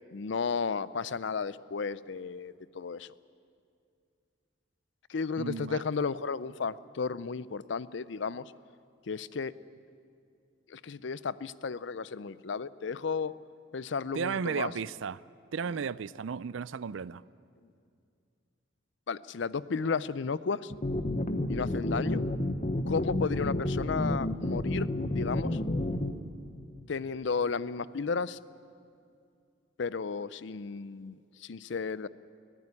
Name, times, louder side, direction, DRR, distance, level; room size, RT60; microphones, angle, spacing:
voice 1, 0.0-3.1 5.1-8.4 9.1-9.5 10.7-13.3 13.7-14.7 15.7-15.8 19.1-20.7 21.5-22.2 22.9-25.6 26.9-28.4 29.8-32.1, left 5 dB, 70° left, 0.5 m, -33 dB
voice 2, 5.4-5.8 14.1-15.2 15.5-17.2, right 6 dB, 80° right, 0.4 m, -34 dB
sound 1, 20.7-26.1, left 1 dB, 35° left, 0.9 m, -30 dB
22.0 x 15.5 x 9.7 m
head